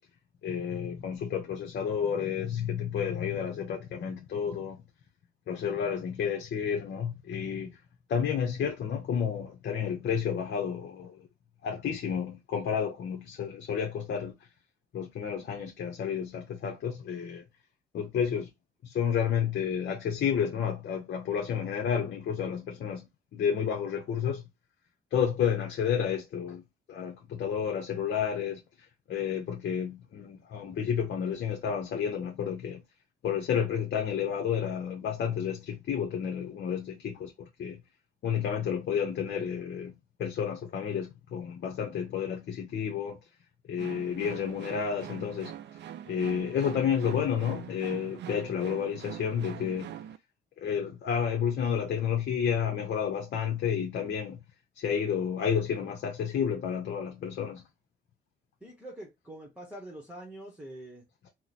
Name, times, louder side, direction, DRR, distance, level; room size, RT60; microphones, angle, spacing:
voice 1, 0.4-4.8 5.5-7.7 8.1-11.3 11.6-14.3 14.9-17.4 17.9-18.5 18.8-23.1 23.3-24.4 25.1-26.6 26.9-28.6 29.1-32.8 33.2-37.8 38.2-39.9 40.2-43.2 43.7-45.5 46.1-50.0 50.6-54.4 54.8-57.6 61.2-61.3, left 7 dB, 60° left, 0.7 m, -31 dB
sound 1, 43.8-50.2, right 10 dB, 65° right, 0.4 m, -43 dB
voice 2, 58.6-61.1, right 1 dB, 5° right, 1.1 m, -45 dB
3.0 x 2.1 x 4.0 m
cardioid pair, 90°, 20 cm